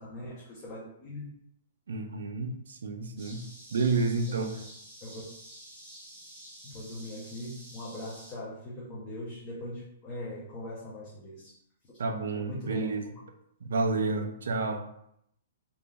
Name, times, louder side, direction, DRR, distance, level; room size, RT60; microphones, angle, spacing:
voice 1, 0.0-1.3 5.0-5.3 6.6-11.6 11.8-11.9 12.4-13.0 14.1-14.2, left 1 dB, 20° left, -5 dB, 0.5 m, -41 dB
voice 2, 1.9-4.6 12.0-13.1 13.6-15.0, right 3 dB, 85° right, 6 dB, 0.4 m, -30 dB
sound 1, 3.2-8.3, right 1 dB, 20° right, 1.4 m, -49 dB
3.2 x 2.2 x 2.2 m, 0.74 s
hypercardioid pair, 165°, 0 cm